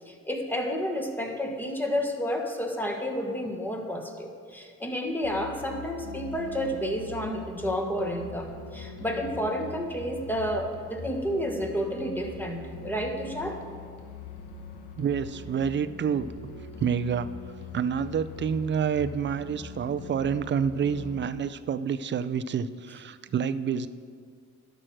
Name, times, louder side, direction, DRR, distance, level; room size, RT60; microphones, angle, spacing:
voice 1, 0.1-13.6, equal, 5° left, 2 dB, 1.3 m, -30 dB
sound 1, 5.2-21.2, left 4 dB, 85° left, 1.1 m, -42 dB
voice 2, 15.0-16.3 16.8-17.3 17.7-23.9, right 7 dB, 40° right, 14 dB, 0.4 m, -28 dB
11.0 x 6.2 x 6.3 m, 2.1 s
cardioid pair, 90°, 30 cm